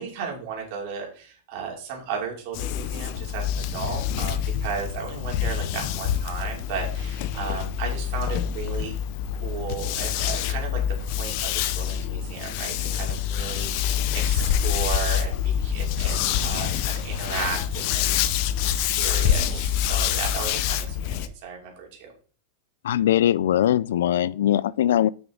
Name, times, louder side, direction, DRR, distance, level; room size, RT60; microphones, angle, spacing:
voice 1, 0.0-9.0 9.3-10.8 11.1-22.1, right 6 dB, 45° right, 2.8 m, -35 dB
sound 1, 2.5-21.3, left 10 dB, 40° left, 0.6 m, -26 dB
voice 2, 22.8-25.1, left 11 dB, 80° left, 0.3 m, -21 dB
9.3 x 6.0 x 3.8 m
supercardioid pair, 170°, 0 cm